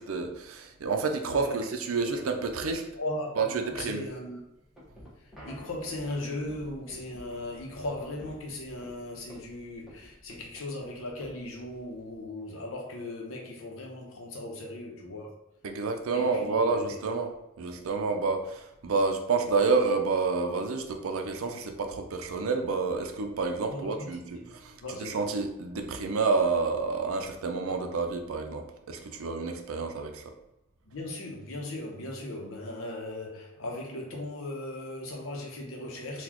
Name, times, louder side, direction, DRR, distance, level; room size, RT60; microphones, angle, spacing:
voice 1, 0.0-2.9 3.4-4.1 15.6-17.3 17.6-30.2, right 4 dB, 85° right, 5 dB, 0.5 m, -29 dB
voice 2, 1.3-1.7 2.0-2.2 3.0-4.4 5.2-15.3 16.1-17.0 23.7-24.1 24.8-25.2 30.8-36.2, left 1 dB, 75° left, 0 dB, 0.8 m, -38 dB
sound 1, 4.1-12.3, equal, ahead, 1.0 m, -51 dB
3.9 x 2.3 x 2.9 m, 0.87 s
head